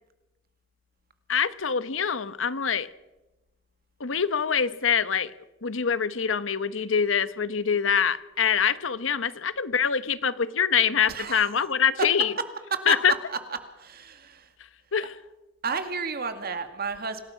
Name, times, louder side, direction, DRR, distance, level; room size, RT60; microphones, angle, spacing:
voice 1, 1.3-2.9 4.0-5.3 5.6-12.3 12.9-13.1 14.9-15.1, left 7 dB, 85° left, 15 dB, 1.0 m, -24 dB
voice 2, 11.1-11.5 12.7-13.0 13.8-14.5 15.6-17.2, right 5 dB, 50° right, 8 dB, 2.2 m, -31 dB
26.0 x 19.0 x 5.9 m, 1.1 s
head